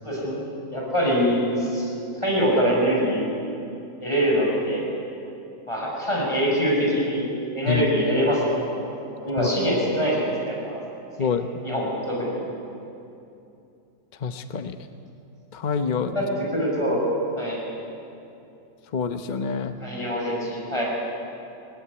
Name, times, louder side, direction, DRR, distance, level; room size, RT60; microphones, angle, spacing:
voice 1, 0.0-3.3 4.0-4.9 5.7-7.3 7.5-8.6 9.1-10.8 11.6-12.4 16.0-17.6 19.8-20.8, equal, 20° left, -3 dB, 6.3 m, -24 dB
voice 2, 11.2-11.6 14.2-14.8 15.5-16.2 18.9-19.7, left 6 dB, 40° left, 8 dB, 0.8 m, -26 dB
21.0 x 19.5 x 9.7 m, 2.7 s
omnidirectional pair, 1.7 m